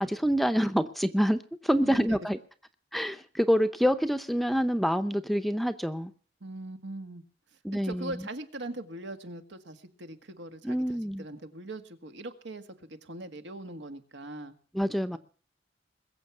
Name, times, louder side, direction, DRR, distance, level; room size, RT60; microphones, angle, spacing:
voice 1, 0.0-2.4 2.9-6.1 7.6-8.2 10.6-11.2 14.7-15.2, equal, ahead, 11 dB, 0.7 m, -27 dB
voice 2, 1.8-2.2 6.4-7.2 7.7-14.6, right 1 dB, 80° right, 8 dB, 1.8 m, -41 dB
21.5 x 7.5 x 8.2 m, 0.42 s
head